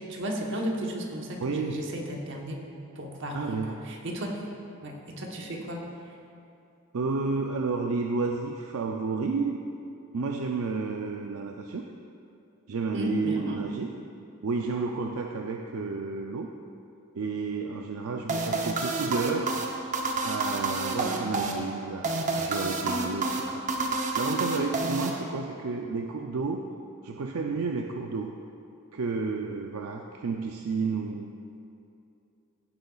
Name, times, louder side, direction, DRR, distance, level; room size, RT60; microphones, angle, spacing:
voice 1, 0.1-2.6 3.0-4.4 4.8-5.9 12.9-13.6, equal, 55° right, 0 dB, 1.1 m, -34 dB
voice 2, 1.4-1.8 3.3-3.8 6.9-9.6 10.1-11.8 12.7-13.9 14.4-16.5 17.1-19.6 20.2-26.7 27.0-28.3 28.9-31.3, right 4 dB, 75° right, 2 dB, 0.5 m, -31 dB
sound 1, 18.3-25.7, right 3 dB, 35° right, 0.7 m, -29 dB
16.0 x 7.7 x 2.4 m, 2.6 s
head